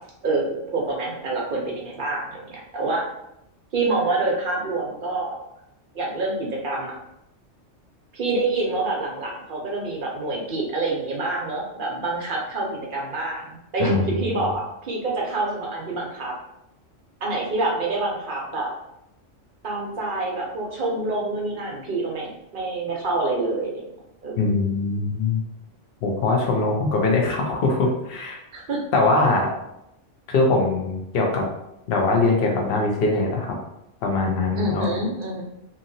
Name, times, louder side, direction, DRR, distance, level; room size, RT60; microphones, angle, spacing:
voice 1, 0.2-3.0 3.7-5.4 5.9-7.0 8.1-16.3 17.2-18.7 19.6-23.8 24.2-24.4 28.5-28.8 34.6-35.4, right 2 dB, 55° right, -2 dB, 0.7 m, -27 dB
voice 2, 13.8-14.1 24.4-25.4 26.0-28.4 28.9-29.5 30.3-31.4 31.9-33.5 34.0-34.9, left 3 dB, 60° left, 1 dB, 0.8 m, -22 dB
2.7 x 2.7 x 2.6 m, 0.84 s
omnidirectional pair, 1.3 m